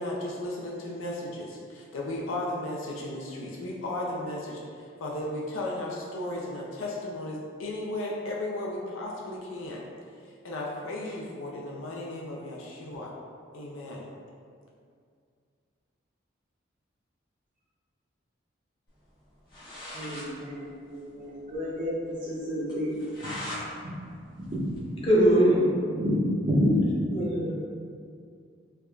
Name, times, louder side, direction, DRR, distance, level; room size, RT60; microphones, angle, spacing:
voice 1, 0.0-4.6 5.0-9.9 10.4-13.1 13.5-14.1, left 1 dB, 85° left, -3 dB, 0.5 m, -35 dB
sound 1, 19.2-19.3 19.5-20.3 20.6-20.7 21.0-21.1 21.5-21.6 22.0-22.1 22.7-23.6 24.0-25.4, equal, 50° left, 1.3 m, -40 dB
voice 2, 19.9-23.0 24.5-25.0 25.9-27.0, left 1 dB, 40° right, -9 dB, 0.6 m, -29 dB
voice 3, 25.0-25.6 27.1-27.5, right 1 dB, 25° left, -6 dB, 0.7 m, -21 dB
4.6 x 2.4 x 2.3 m, 2.2 s
head